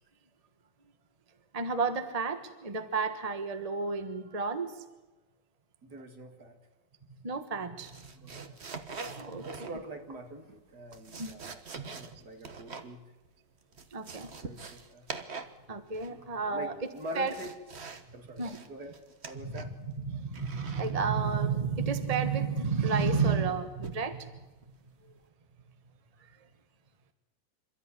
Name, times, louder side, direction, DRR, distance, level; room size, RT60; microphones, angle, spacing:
voice 1, 1.5-4.8 7.2-8.0 8.2-8.5 9.0-9.7 11.2-11.3 11.8-12.2 13.9-14.3 15.7-16.7 17.1-17.3 18.4-18.6 19.4-19.6 20.0-24.4 25.0-25.1 26.2-26.4, right 5 dB, 25° right, 8 dB, 1.2 m, -31 dB
voice 2, 5.8-6.6 8.2-8.6 9.4-13.1 14.4-15.1 16.1-16.2 16.5-17.5 18.1-19.7, right 1 dB, 60° right, 5 dB, 2.8 m, -45 dB
sound 1, 7.8-10.0 10.7-12.9 13.3-13.4 13.6-15.6 15.9-16.3 16.8-18.1 18.4-19.8 20.3-20.9 22.1-22.5 23.8-24.1 24.6-24.9, right 4 dB, 40° right, 1.4 m, -44 dB
27.0 x 13.5 x 9.9 m, 1.1 s
omnidirectional pair, 2.0 m